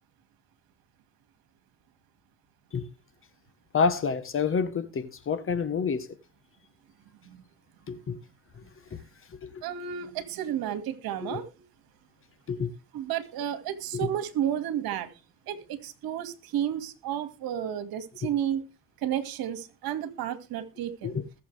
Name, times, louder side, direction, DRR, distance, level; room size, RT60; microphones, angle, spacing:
voice 1, 3.7-6.1 7.9-8.2 8.9-9.0 9.3-9.6 11.2-11.4 12.5-12.7 13.9-14.1 21.0-21.2, left 5 dB, 30° left, 1.3 m, -28 dB
voice 2, 9.6-11.5 12.9-15.1 15.5-18.6 19.0-21.2, right 10 dB, 60° right, 2.3 m, -32 dB
21.0 x 7.2 x 3.4 m
supercardioid pair, 100°, 40 cm